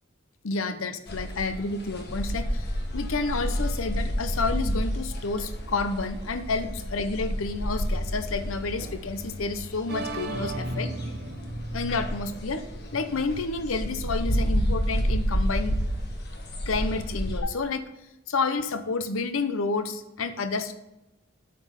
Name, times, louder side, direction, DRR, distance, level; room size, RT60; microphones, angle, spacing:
voice 1, 0.4-10.9 11.7-12.6 12.9-15.8 16.7-17.8 18.3-20.7, left 3 dB, 85° left, 10 dB, 0.8 m, -30 dB
sound 1, 1.1-17.4, equal, 55° left, 1.5 m, -30 dB
sound 2, 9.9-13.7, right 2 dB, 50° right, 0.9 m, -36 dB
9.0 x 6.2 x 5.7 m, 0.93 s
head